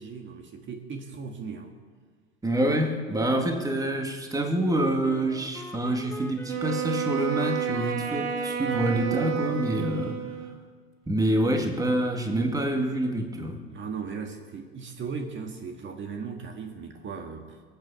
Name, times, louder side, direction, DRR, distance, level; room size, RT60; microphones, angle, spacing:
voice 1, 0.0-1.7 13.7-17.6, right 5 dB, 35° right, 4 dB, 1.9 m, -37 dB
voice 2, 2.4-10.6 11.1-13.6, right 1 dB, 10° right, 3 dB, 2.1 m, -27 dB
Wind instrument woodwind instrument, 4.7-9.8, left 2 dB, 5° left, 1.0 m, -43 dB
Wind instrument woodwind instrument 2, 6.5-10.6, right 8 dB, 75° right, 1.7 m, -30 dB
22.5 x 7.9 x 7.0 m, 1.5 s
hypercardioid pair, 90°, 32 cm